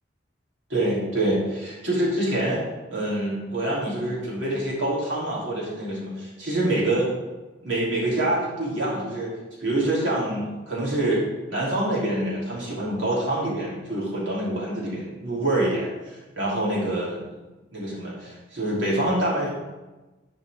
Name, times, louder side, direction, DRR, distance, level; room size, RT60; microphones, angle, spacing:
voice 1, 0.7-2.6 2.9-7.1 7.6-9.3 9.6-11.2 11.5-17.2 17.7-19.5, right 1 dB, 85° right, -6 dB, 3.0 m, -26 dB
11.0 x 5.2 x 3.5 m, 1.2 s
head